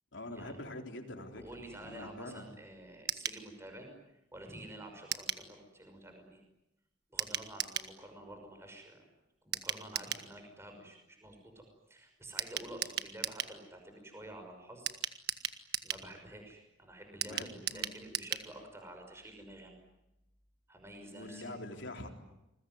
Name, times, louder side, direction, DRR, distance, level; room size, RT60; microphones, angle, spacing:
voice 1, 0.1-2.5 17.2-17.9 21.1-22.1, left 1 dB, 65° left, 3 dB, 3.9 m, -45 dB
voice 2, 1.4-6.4 7.1-9.1 9.4-14.9 15.5-19.7 20.7-21.8, right 1 dB, 15° right, 4 dB, 5.9 m, -50 dB
sound 1, 3.1-3.4 5.1-5.5 7.2-7.9 9.5-10.3 12.4-13.6 14.9-16.1 17.2-18.5 18.8-18.9 19.1-19.2, right 10 dB, 55° right, 1.6 m, -37 dB
29.0 x 21.5 x 9.6 m, 0.91 s
head